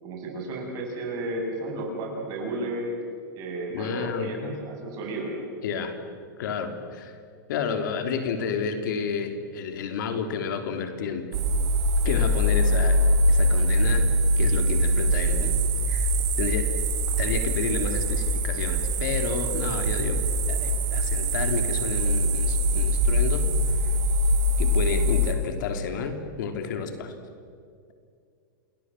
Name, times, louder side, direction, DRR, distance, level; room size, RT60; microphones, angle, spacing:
voice 1, 0.0-2.9 3.3-5.3, right 2 dB, 35° right, 0 dB, 8.0 m, -33 dB
voice 2, 3.7-4.6 5.6-6.0 6.4-7.2 7.5-11.3 12.0-13.0 13.3-14.1 14.4-15.6 15.9-16.1 16.4-16.7 17.2-20.2 20.5-23.5 23.8-23.9 24.6-27.1, left 6 dB, 65° left, 7 dB, 3.1 m, -31 dB
sound 1, 11.3-25.3, equal, 65° right, 5.1 m, -23 dB
28.5 x 20.5 x 7.8 m, 2.3 s
supercardioid pair, 145°, 11 cm